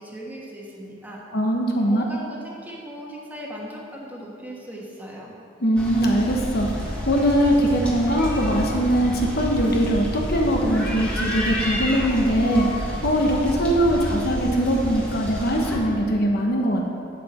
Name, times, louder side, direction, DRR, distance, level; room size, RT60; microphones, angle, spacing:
voice 1, 0.0-1.2 1.9-5.3, equal, 10° right, -4 dB, 1.4 m, -38 dB
voice 2, 1.3-2.0 5.6-16.9, equal, 55° left, 0 dB, 1.1 m, -21 dB
sound 1, 5.8-15.8, equal, 5° left, 1.4 m, -29 dB
11.0 x 8.0 x 4.3 m, 2.6 s
head